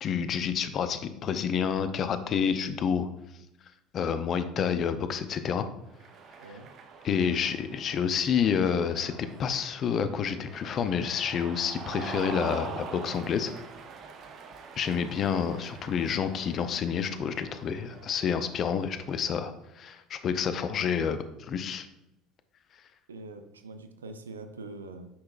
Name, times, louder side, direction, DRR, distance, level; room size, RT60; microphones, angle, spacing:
voice 1, 0.0-3.1 3.9-5.6 7.0-13.5 14.8-21.9, left 7 dB, 45° left, 10 dB, 0.6 m, -29 dB
Cheering, 5.9-19.3, right 5 dB, 50° right, 0.7 m, -44 dB
voice 2, 23.1-25.1, right 3 dB, 85° right, 8 dB, 0.6 m, -43 dB
8.5 x 5.8 x 2.5 m, 0.87 s
figure-of-eight pair, 65°, 0 cm